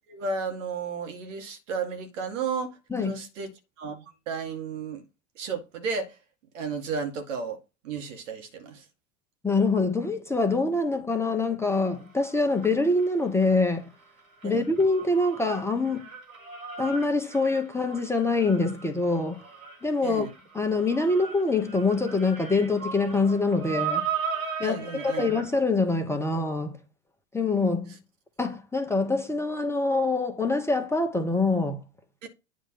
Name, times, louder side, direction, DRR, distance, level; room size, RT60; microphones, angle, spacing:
voice 1, 0.1-3.5 3.8-5.1 5.4-6.2 6.5-7.6 7.8-8.8 14.4-14.6 20.0-20.3 24.6-25.3 32.2-32.3, right 5 dB, 65° right, 2.0 m, -33 dB
voice 2, 2.9-3.2 9.4-13.9 14.4-16.1 16.8-19.4 19.8-20.3 20.5-24.1 24.6-24.8 25.2-26.7 27.3-27.9 28.4-31.8, left 3 dB, 5° left, 1.1 m, -25 dB
sound 1, 11.7-13.8 14.0-25.6, right 7 dB, 85° right, 2.4 m, -37 dB
9.4 x 3.3 x 5.8 m
hypercardioid pair, 95°, 40 cm